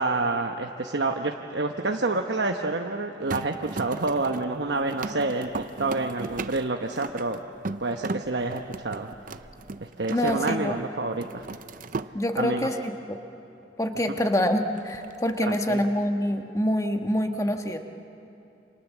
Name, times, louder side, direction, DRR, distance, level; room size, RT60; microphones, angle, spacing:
voice 1, 0.0-5.5 5.8-7.4 7.8-9.1 9.8-11.5 12.4-12.7 15.4-15.9, right 3 dB, 70° right, 3 dB, 1.0 m, -28 dB
sound 1, 3.3-10.8 11.1-12.1 14.8-15.6, right 3 dB, 50° right, 0.6 m, -36 dB
voice 2, 10.1-10.8 12.1-13.2 13.8-17.8, equal, 20° left, 5 dB, 1.4 m, -26 dB
29.0 x 26.5 x 7.4 m, 2.8 s
head